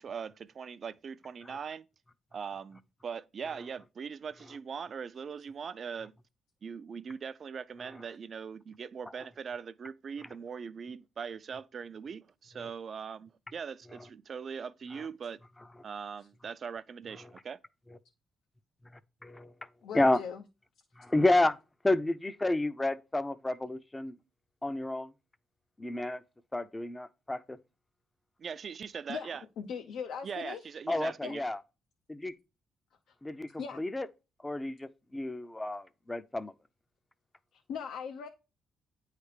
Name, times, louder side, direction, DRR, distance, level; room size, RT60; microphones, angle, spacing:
voice 1, 0.0-1.8 2.3-6.1 6.6-15.4 15.8-17.6 28.4-29.4 30.2-31.4, right 6 dB, 45° right, 0.5 m, -41 dB
voice 2, 19.2-19.5 19.9-20.2 21.0-21.6 21.8-24.1 24.6-25.1 25.8-26.2 26.5-27.6 30.9-31.6 32.1-32.3 33.2-34.1 34.4-36.5, left 2 dB, 15° left, 0.5 m, -30 dB
voice 3, 19.8-20.4 29.1-29.3 29.6-30.6 31.2-31.4 33.1-33.2 33.6-33.8 37.5-38.3, left 6 dB, 80° left, 0.7 m, -39 dB
9.2 x 3.3 x 4.9 m
cardioid pair, 100°, 0 cm